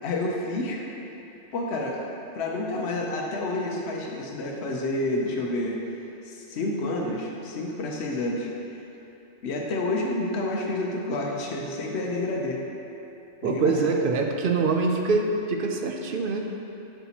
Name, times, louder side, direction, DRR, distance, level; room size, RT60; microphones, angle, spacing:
voice 1, 0.0-0.8 1.5-2.1 2.3-5.8 6.2-8.5 9.4-12.6 13.4-13.7, left 2 dB, 65° left, -1 dB, 1.0 m, -29 dB
voice 2, 13.4-16.5, right 4 dB, 60° right, 3 dB, 0.6 m, -24 dB
8.1 x 5.8 x 2.9 m, 2.9 s
omnidirectional pair, 1.3 m